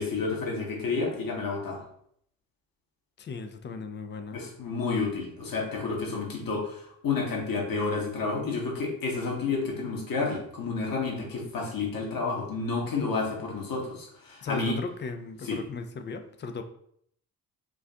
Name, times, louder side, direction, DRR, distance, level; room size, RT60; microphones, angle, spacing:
voice 1, 0.0-1.8 4.3-14.8 15.4-15.6, left 4 dB, 45° left, -1 dB, 1.3 m, -30 dB
voice 2, 3.2-4.5 14.4-16.6, left 4 dB, 25° left, 7 dB, 0.4 m, -36 dB
5.0 x 2.5 x 2.4 m, 0.68 s
figure-of-eight pair, 40°, 49 cm